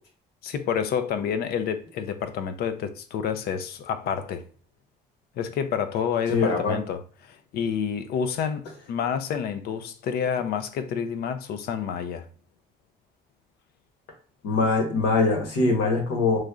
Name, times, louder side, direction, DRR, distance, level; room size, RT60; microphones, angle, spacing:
voice 1, 0.4-4.5 5.4-12.3, left 7 dB, 70° left, 0.5 m, -29 dB
voice 2, 6.3-6.7 14.4-16.4, left 3 dB, 85° left, 1.4 m, -22 dB
3.2 x 2.4 x 3.6 m
cardioid pair, 110°, 17 cm